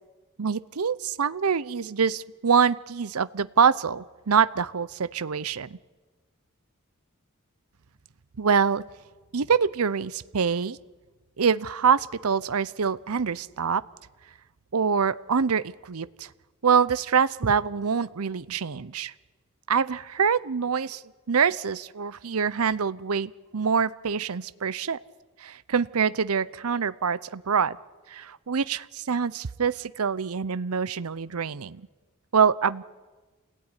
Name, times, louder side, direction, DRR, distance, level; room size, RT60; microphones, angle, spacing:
voice 1, 0.4-5.8 8.4-8.8 9.3-10.8 11.4-13.8 14.7-16.3 16.6-19.1 19.7-21.0 21.3-25.0 25.4-27.8 28.1-31.8 32.3-32.8, right 6 dB, 70° right, 17 dB, 0.7 m, -25 dB
28.0 x 17.0 x 9.8 m, 1.3 s
head